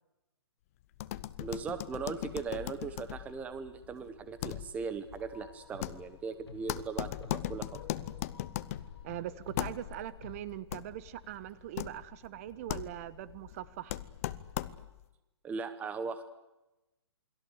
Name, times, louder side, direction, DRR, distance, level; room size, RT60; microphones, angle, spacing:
sound 1, 0.9-15.1, left 14 dB, 30° left, 1.0 m, -40 dB
voice 1, 1.4-7.7 15.4-16.2, right 5 dB, 10° right, 11 dB, 1.1 m, -39 dB
sound 2, 5.1-10.4, left 5 dB, 60° left, 4.6 m, -53 dB
voice 2, 9.0-14.0, right 13 dB, 30° right, 16 dB, 1.2 m, -41 dB
28.0 x 22.0 x 8.2 m, 0.99 s
hypercardioid pair, 160°, 14 cm